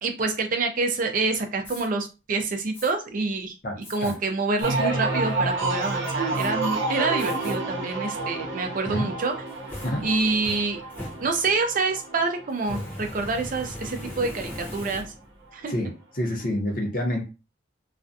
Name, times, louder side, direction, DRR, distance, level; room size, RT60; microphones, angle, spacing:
voice 1, 0.0-3.5 3.9-9.3 10.0-10.8 11.2-15.0 15.5-15.7, right 3 dB, 40° right, 5 dB, 0.4 m, -27 dB
Fire, 1.6-1.9 2.7-2.9 3.8-4.1 4.6-4.7 5.2-5.7 6.3-6.5 7.2-7.6 8.0-8.1 9.2-11.7 12.6-15.4, left 1 dB, 10° left, 0.8 m, -39 dB
voice 2, 3.6-4.1 8.9-9.1 9.8-10.1 15.7-17.3, left 1 dB, 40° left, 1 dB, 0.7 m, -28 dB
sound 1, 4.6-14.2 14.5-15.1, right 3 dB, 65° right, 0.8 m, -30 dB
2.4 x 2.2 x 2.6 m, 0.29 s
head